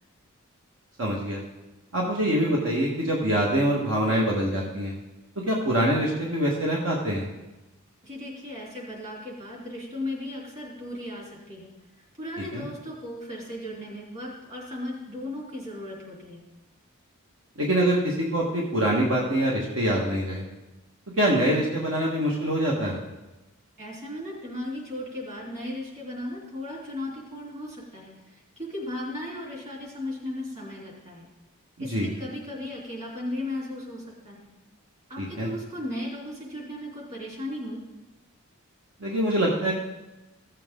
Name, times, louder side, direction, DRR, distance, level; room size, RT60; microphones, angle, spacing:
voice 1, 1.0-1.4 1.9-4.9 5.5-7.2 12.5-12.6 17.6-20.4 21.2-23.0 31.8-32.1 35.2-35.5 39.0-39.7, right 1 dB, 70° right, -3 dB, 1.6 m, -24 dB
voice 2, 8.0-11.7 12.2-16.4 23.8-28.1 28.6-31.3 31.8-34.5 35.1-37.8, left 1 dB, 35° right, -3 dB, 3.4 m, -36 dB
15.5 x 7.5 x 3.8 m, 1.0 s
head